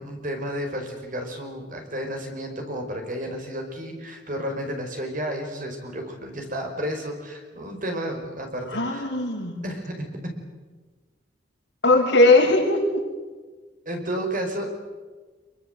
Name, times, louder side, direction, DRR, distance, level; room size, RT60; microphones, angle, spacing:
voice 1, 0.0-9.1 9.6-9.9 13.8-14.7, equal, 45° right, 3 dB, 5.1 m, -32 dB
voice 2, 8.7-9.5 11.8-13.0, left 2 dB, 65° left, -2 dB, 7.4 m, -19 dB
26.0 x 24.0 x 8.1 m, 1.3 s
head